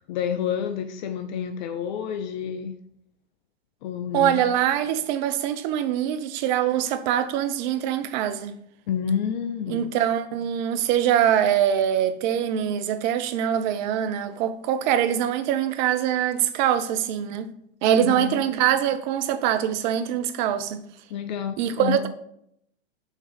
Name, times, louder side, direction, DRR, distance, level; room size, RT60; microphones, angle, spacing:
voice 1, 0.1-2.8 3.8-4.4 8.9-9.9 17.9-18.4 21.1-22.1, left 8 dB, 45° left, 0.5 m, -29 dB
voice 2, 4.1-8.6 9.7-17.5 17.8-20.8 21.6-22.1, right 10 dB, 45° right, 0.7 m, -23 dB
6.3 x 3.8 x 5.0 m
hypercardioid pair, 105°, 34 cm